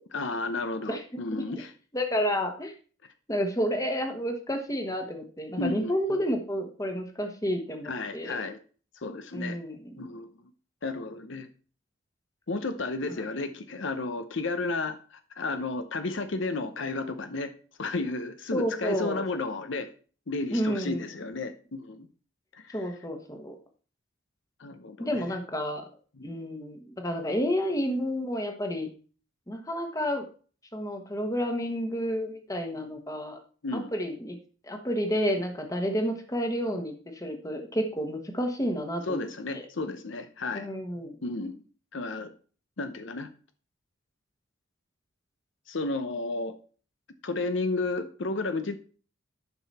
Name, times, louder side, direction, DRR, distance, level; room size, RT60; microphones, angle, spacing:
voice 1, 0.1-1.7 5.6-6.2 7.8-8.6 8.9-9.6 10.0-10.3 10.8-11.5 12.5-19.9 20.3-22.1 22.5-22.8 24.6-25.2 26.2-26.3 33.6-33.9 39.1-40.7 41.2-41.6 41.9-42.3 42.8-43.3 45.7-46.6 47.2-48.8, left 3 dB, 65° left, 9 dB, 0.8 m, -32 dB
voice 2, 1.9-2.7 3.3-8.4 9.3-10.1 13.1-13.2 18.5-19.2 20.5-21.0 22.7-23.5 25.0-25.8 26.2-28.9 29.5-30.3 30.7-33.4 33.7-34.4 34.6-39.6 40.5-41.1, equal, 15° left, 5 dB, 1.2 m, -30 dB
11.0 x 5.8 x 4.2 m, 0.40 s
head